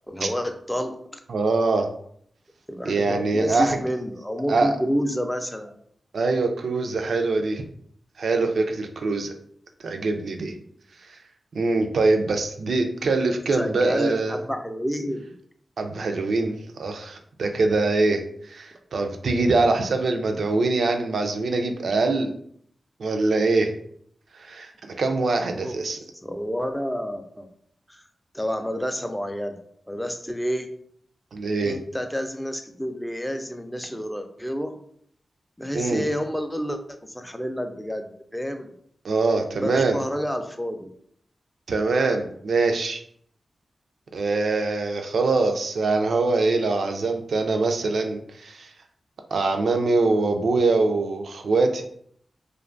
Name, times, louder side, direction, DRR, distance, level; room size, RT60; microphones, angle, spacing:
voice 1, 0.1-1.0 2.7-5.7 13.5-15.3 25.5-25.7 26.2-27.5 27.9-28.0 28.3-29.6 29.9-30.7 31.6-34.8 35.6-36.8 37.1-38.0 38.3-38.7 39.6-40.9, equal, 5° left, 6 dB, 0.4 m, -29 dB
voice 2, 1.3-1.9 2.9-3.8 4.5-4.7 6.1-7.6 8.2-9.3 9.8-10.5 11.1-11.2 11.5-14.4 15.8-22.3 23.0-23.7 24.3-26.0 31.3-31.8 35.7-36.1 39.0-40.0 41.7-43.0 44.1-48.7 49.3-51.8, right 3 dB, 75° right, 5 dB, 0.3 m, -23 dB
2.5 x 2.2 x 2.4 m, 0.64 s
cardioid pair, 40°, 0 cm